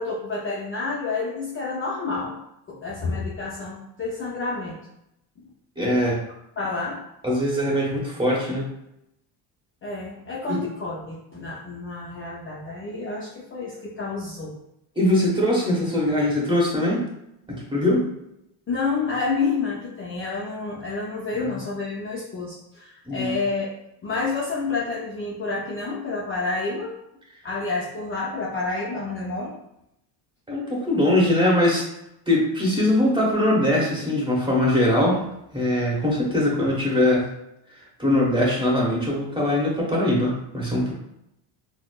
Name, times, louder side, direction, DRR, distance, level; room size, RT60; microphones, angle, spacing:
voice 1, 0.0-2.4 2.7-4.8 6.6-7.0 9.8-14.6 18.7-23.7 24.0-26.9 27.4-29.6, left 3 dB, 25° left, -4 dB, 0.5 m, -29 dB
voice 2, 5.8-6.2 7.2-8.7 10.5-10.6 14.9-17.0 17.5-18.1 21.3-21.5 23.1-23.4 30.5-31.8 32.3-35.2 35.5-37.2 38.0-40.9, left 1 dB, 10° right, -5 dB, 1.2 m, -21 dB
4.0 x 2.0 x 2.3 m, 0.82 s
supercardioid pair, 85°, 47 cm